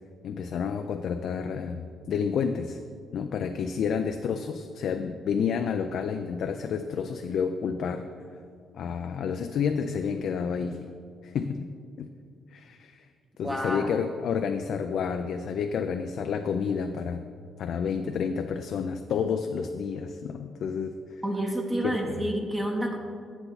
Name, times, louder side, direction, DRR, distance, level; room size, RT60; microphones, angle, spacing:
voice 1, 0.2-2.8 3.1-8.0 8.7-10.8 11.2-12.1 12.5-13.1 13.4-17.2 17.6-21.2 21.8-22.2, left 6 dB, 70° left, 6 dB, 0.3 m, -30 dB
voice 2, 13.4-13.9 21.2-23.0, right 1 dB, 15° right, 2 dB, 0.8 m, -29 dB
8.0 x 7.0 x 4.0 m, 2.2 s
cardioid pair, 90°, 0 cm